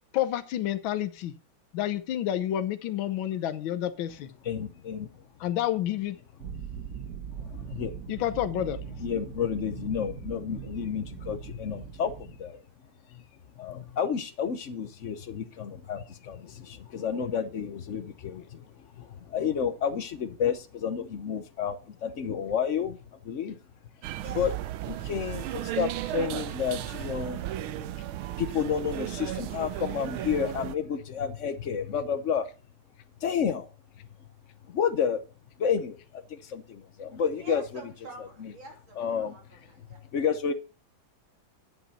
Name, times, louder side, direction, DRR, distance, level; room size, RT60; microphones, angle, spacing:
voice 1, 0.1-1.3 1.7-4.3 5.4-6.2 8.1-8.8, left 12 dB, 75° left, 10 dB, 1.6 m, -29 dB
voice 2, 4.4-5.1 7.4-7.9 9.0-12.6 13.1-13.2 13.6-18.6 19.0-23.6 24.3-24.5 24.9-27.4 28.4-32.5 33.2-33.7 34.7-35.2 35.6-37.8 38.2-38.5 38.9-39.4 40.1-40.5, left 7 dB, 55° left, 10 dB, 0.9 m, -30 dB
sound 1, 6.4-12.4, right 6 dB, 50° right, 1.5 m, -40 dB
sound 2, 24.0-30.8, right 13 dB, 85° right, 1.5 m, -35 dB
voice 3, 24.2-24.5 37.4-39.4 39.7-40.0, right 3 dB, 70° right, 1 dB, 3.7 m, -46 dB
9.9 x 8.3 x 4.2 m, 0.33 s
omnidirectional pair, 2.2 m